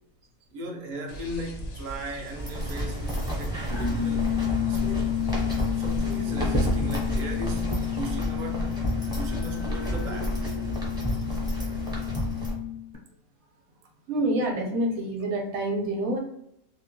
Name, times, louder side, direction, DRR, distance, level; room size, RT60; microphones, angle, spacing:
voice 1, 0.5-5.1 5.7-10.5, right 1 dB, 75° right, 0.4 m, -38 dB
sound 1, 1.1-8.2, equal, 70° left, 0.6 m, -41 dB
sound 2, 2.3-12.5, equal, 5° right, 0.4 m, -30 dB
sound 3, 3.7-13.0, left 13 dB, 40° right, 0.7 m, -31 dB
voice 2, 14.1-16.2, right 1 dB, 60° right, 0.9 m, -27 dB
2.7 x 2.1 x 2.9 m
omnidirectional pair, 1.5 m